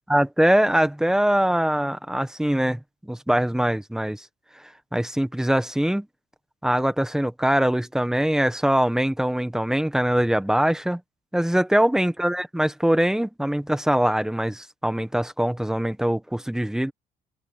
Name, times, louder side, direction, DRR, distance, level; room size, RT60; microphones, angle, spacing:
voice 1, 0.1-4.2 4.9-6.1 6.6-11.0 11.3-16.9, right 1 dB, 5° right, 1.5 m, -22 dB
cardioid pair, 110°, 17 cm